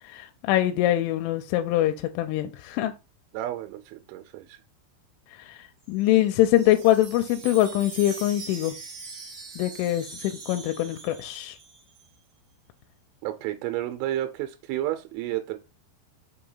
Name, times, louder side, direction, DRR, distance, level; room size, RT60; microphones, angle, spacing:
voice 1, 0.1-2.9 5.5-5.6 5.9-8.8 9.6-11.6, left 13 dB, 85° left, 3.0 m, -23 dB
voice 2, 3.3-4.6 13.2-15.6, right 13 dB, 90° right, 3.1 m, -31 dB
Wind chime, 5.9-12.1, right 4 dB, 65° right, 1.6 m, -42 dB
6.9 x 2.8 x 5.5 m
omnidirectional pair, 5.4 m